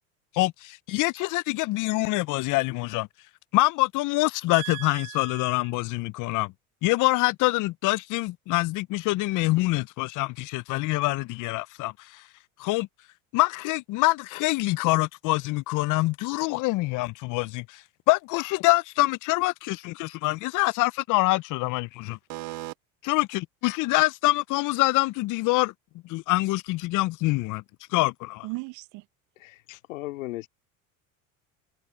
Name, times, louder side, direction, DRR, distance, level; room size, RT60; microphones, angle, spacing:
voice 1, 0.3-3.1 3.5-6.5 6.8-12.2 12.6-12.9 13.3-22.2 23.0-25.7 26.0-27.6 27.9-28.5 29.7-29.8, left 21 dB, 55° left, 0.7 m, -25 dB
voice 2, 4.5-5.6 22.3-22.7 28.4-29.0, right 23 dB, 50° right, 0.5 m, -37 dB
voice 3, 29.9-30.5, left 18 dB, 85° left, 2.9 m, -36 dB
hypercardioid pair, 85°, 38 cm